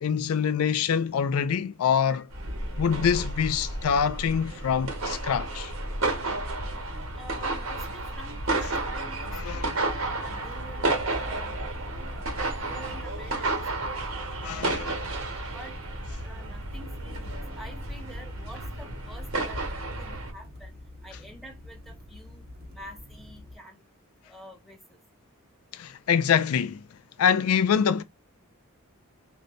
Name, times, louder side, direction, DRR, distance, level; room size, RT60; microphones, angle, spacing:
voice 1, 0.0-2.3 2.8-5.7 9.3-9.8 14.4-14.8 25.7-26.8 27.2-28.0, left 7 dB, 90° left, 0.4 m, -25 dB
sound 1, 2.3-20.3, right 2 dB, 70° right, 1.3 m, -32 dB
voice 2, 7.1-11.5 12.7-14.0 14.4-14.8 15.4-15.7 16.2-19.6 20.0-20.8 21.0-23.8 24.2-25.0, equal, ahead, 1.4 m, -47 dB
sound 2, 9.9-23.6, left 1 dB, 50° right, 1.2 m, -46 dB
3.9 x 2.6 x 3.1 m
head